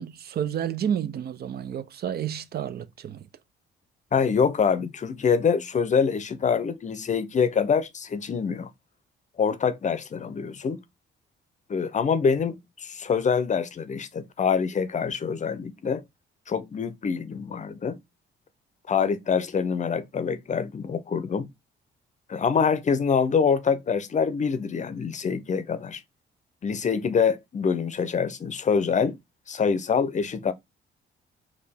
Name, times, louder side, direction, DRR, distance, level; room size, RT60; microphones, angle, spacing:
voice 1, 0.0-3.3, right 9 dB, 55° right, 0.5 m, -30 dB
voice 2, 4.1-8.7 9.4-10.8 11.7-16.0 16.5-18.0 18.9-21.5 22.3-26.0 26.6-29.2 29.5-30.5, left 6 dB, 35° left, 0.6 m, -25 dB
4.6 x 2.9 x 3.4 m
cardioid pair, 90°, 20 cm